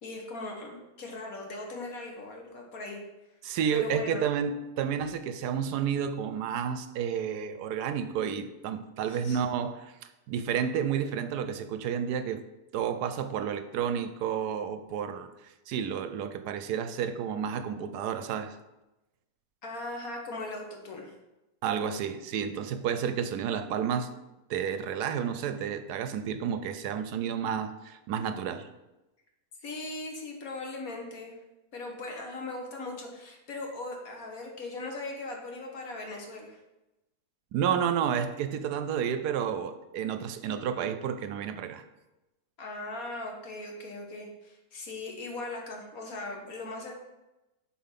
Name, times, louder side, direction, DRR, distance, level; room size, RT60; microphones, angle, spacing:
voice 1, 0.0-3.0 3.7-4.2 9.1-9.4 19.6-21.1 29.6-31.4 31.7-36.6 42.6-47.0, left 2 dB, 60° left, 1 dB, 1.7 m, -39 dB
voice 2, 3.4-9.9 10.3-12.4 12.7-18.6 21.6-24.1 24.5-28.7 37.5-41.9, right 8 dB, 75° right, 9 dB, 1.2 m, -31 dB
7.2 x 4.6 x 5.7 m, 0.99 s
omnidirectional pair, 1.8 m